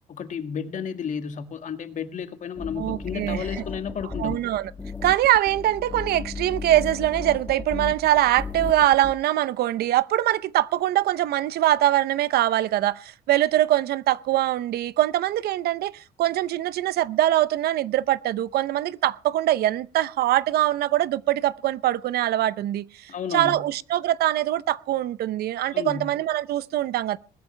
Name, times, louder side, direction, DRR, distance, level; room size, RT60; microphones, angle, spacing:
voice 1, 0.1-4.4 23.1-23.7 25.7-26.1, left 7 dB, 45° left, 2.0 m, -32 dB
sound 1, 2.6-9.1, left 4 dB, 10° left, 1.3 m, -35 dB
voice 2, 2.8-3.4 4.2-4.7 5.0-27.2, right 13 dB, 70° right, 0.7 m, -23 dB
20.5 x 13.0 x 3.3 m
cardioid pair, 110°, 17 cm